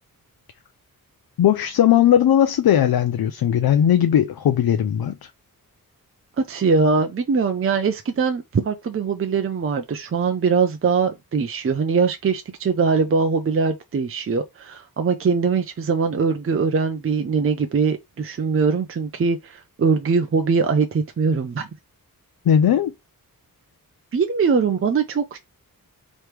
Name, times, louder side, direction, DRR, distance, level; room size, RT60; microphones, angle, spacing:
voice 1, 1.4-5.1 22.5-22.9, left 10 dB, 85° left, 0.6 m, -18 dB
voice 2, 6.4-21.7 24.1-25.4, right 5 dB, 35° right, 0.5 m, -22 dB
3.3 x 3.1 x 4.5 m
wide cardioid pair, 165°, 36 cm